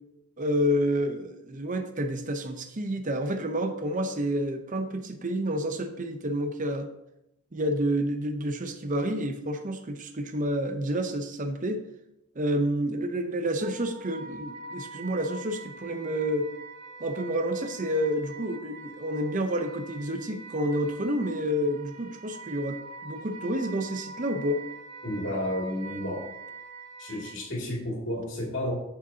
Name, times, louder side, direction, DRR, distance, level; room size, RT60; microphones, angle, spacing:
voice 1, 0.4-6.9 7.5-11.8 12.4-16.5 17.0-24.6, equal, 35° right, 7 dB, 0.7 m, -29 dB
Wind instrument woodwind instrument, 13.6-27.4, right 3 dB, 70° right, 2.7 m, -44 dB
voice 2, 25.0-26.2 27.0-28.7, left 1 dB, 55° left, -3 dB, 2.5 m, -31 dB
9.1 x 6.6 x 2.8 m, 0.84 s
head